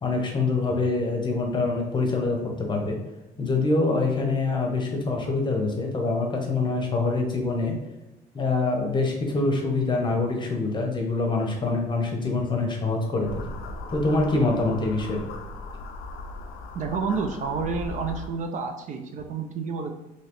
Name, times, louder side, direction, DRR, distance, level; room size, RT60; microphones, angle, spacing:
voice 1, 0.0-3.0 3.4-7.8 8.3-13.4 13.9-15.2, left 3 dB, 25° left, 1 dB, 0.8 m, -25 dB
sound 1, 13.2-18.3, left 2 dB, 85° left, 0.4 m, -38 dB
voice 2, 16.7-19.9, right 5 dB, 45° right, 5 dB, 0.4 m, -29 dB
3.1 x 2.9 x 2.9 m, 1.0 s
cardioid pair, 110°, 17 cm